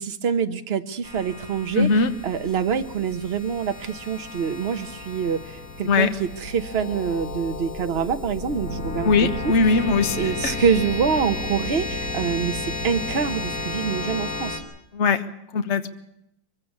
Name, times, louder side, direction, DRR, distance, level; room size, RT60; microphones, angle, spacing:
voice 1, 0.0-1.9 2.2-9.5 10.1-14.6, right 6 dB, 40° right, 8 dB, 1.2 m, -26 dB
sound 1, 1.0-14.6, left 2 dB, 65° left, 4.0 m, -33 dB
voice 2, 1.7-2.1 5.8-6.1 9.0-10.6 14.9-15.2 15.5-15.9, left 4 dB, 45° left, 9 dB, 1.4 m, -20 dB
23.0 x 16.0 x 8.4 m, 0.80 s
omnidirectional pair, 1.7 m